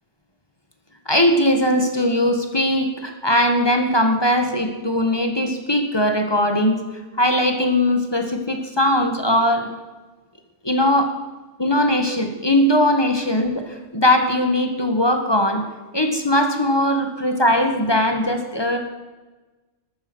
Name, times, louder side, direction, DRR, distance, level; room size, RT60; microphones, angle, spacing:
voice 1, 1.1-6.8 7.1-9.7 10.6-11.1 11.6-15.6 15.9-18.8, left 1 dB, 20° left, 5 dB, 1.8 m, -19 dB
14.0 x 12.0 x 6.3 m, 1.2 s
omnidirectional pair, 1.3 m